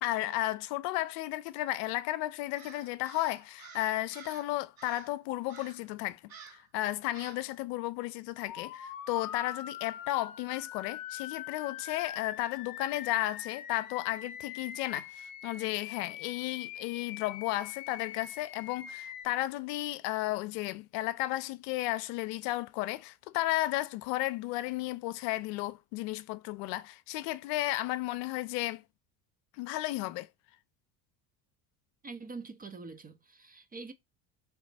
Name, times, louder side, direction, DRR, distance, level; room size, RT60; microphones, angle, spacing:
voice 1, 0.0-28.8 29.6-30.3, left 16 dB, 75° left, 0.6 m, -34 dB
Crow, 2.5-4.5 4.8-5.2 5.5-5.9 6.3-6.7 7.1-7.5, right 6 dB, 45° right, 1.4 m, -51 dB
sound 1, 8.5-19.3, left 10 dB, 45° left, 0.8 m, -43 dB
voice 2, 32.0-33.9, right 4 dB, 20° right, 0.5 m, -44 dB
4.0 x 3.1 x 3.3 m
hypercardioid pair, 80°, 49 cm